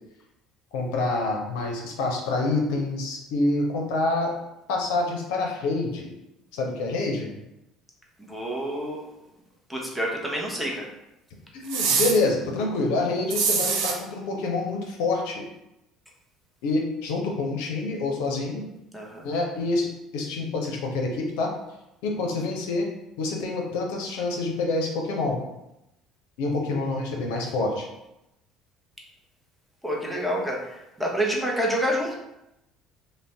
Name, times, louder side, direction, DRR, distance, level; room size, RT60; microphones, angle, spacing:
voice 1, 0.7-4.3 4.7-6.1 6.5-7.3 11.5-15.4 16.6-18.6 19.2-21.5 22.0-22.9 23.2-25.4 26.4-27.8, left 2 dB, 80° left, 0 dB, 0.5 m, -27 dB
voice 2, 8.2-9.1 9.7-10.9 18.9-19.2 29.8-32.1, equal, 5° right, -2 dB, 0.8 m, -28 dB
sound 1, 11.7-12.2 13.3-13.9, right 5 dB, 75° right, 0.4 m, -23 dB
2.5 x 2.1 x 3.3 m, 0.88 s
hypercardioid pair, 70°, 0 cm